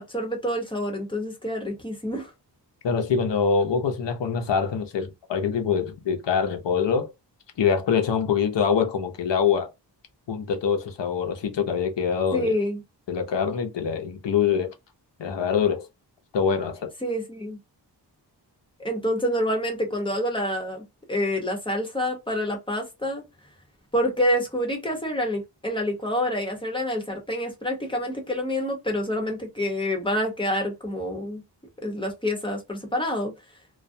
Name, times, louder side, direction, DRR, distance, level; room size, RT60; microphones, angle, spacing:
voice 1, 0.1-2.3 12.3-12.8 17.0-17.6 18.8-23.2 23.9-31.4 31.8-33.3, equal, 10° left, 0.9 m, -27 dB
voice 2, 2.8-7.1 7.6-9.7 10.3-12.5 13.1-14.7 15.2-15.9 16.3-16.9, left 6 dB, 80° left, 0.7 m, -24 dB
2.3 x 2.2 x 2.6 m
wide cardioid pair, 110°, 43 cm